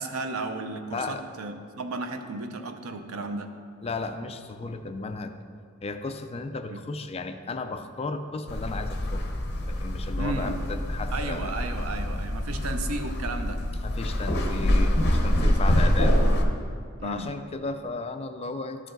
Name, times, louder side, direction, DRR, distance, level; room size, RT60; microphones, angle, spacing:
voice 1, 0.0-3.5 6.7-6.8 10.2-10.7 11.1-13.6 15.6-16.4 17.0-17.3, right 3 dB, 80° right, 7 dB, 0.7 m, -34 dB
voice 2, 0.9-1.3 3.8-5.3 5.8-9.3 9.7-11.5 13.8-16.1 17.0-18.9, left 3 dB, 30° left, 7 dB, 0.4 m, -34 dB
sound 1, 8.5-16.4, equal, 50° left, 0.9 m, -25 dB
12.5 x 4.9 x 3.9 m, 2.2 s
head